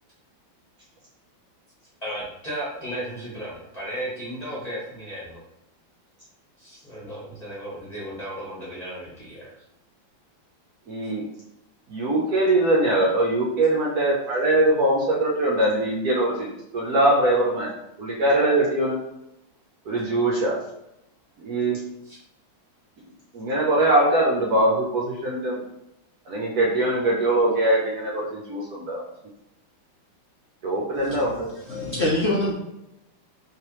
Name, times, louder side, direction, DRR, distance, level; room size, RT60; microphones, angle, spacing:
voice 1, 2.0-5.4 6.6-9.6 22.0-22.2, right 1 dB, 30° left, -7 dB, 0.8 m, -35 dB
voice 2, 10.9-11.2 11.9-17.7 18.0-19.0 19.9-20.6 21.4-21.8 23.3-25.6 26.3-29.0 30.6-31.5, right 1 dB, 65° right, -4 dB, 1.0 m, -22 dB
voice 3, 30.9-32.5, left 1 dB, 80° left, -6 dB, 0.5 m, -26 dB
3.2 x 3.2 x 3.0 m, 0.85 s
omnidirectional pair, 2.3 m